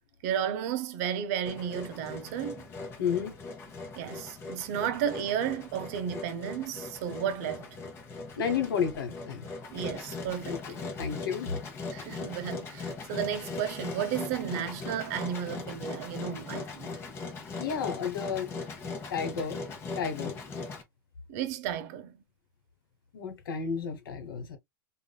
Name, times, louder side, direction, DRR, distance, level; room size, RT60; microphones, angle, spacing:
voice 1, 0.2-2.7 4.0-7.8 9.7-10.6 11.9-16.9 21.3-22.2, right 9 dB, 45° right, 0.6 m, -33 dB
Engine, 1.5-20.8, left 4 dB, 20° left, 0.8 m, -40 dB
voice 2, 3.0-3.3 8.4-9.5 10.4-10.6 11.0-11.5 17.6-18.5 19.1-19.6 19.9-20.4 23.1-24.6, left 7 dB, 80° left, 1.2 m, -31 dB
3.6 x 2.4 x 2.2 m
supercardioid pair, 150°, 11 cm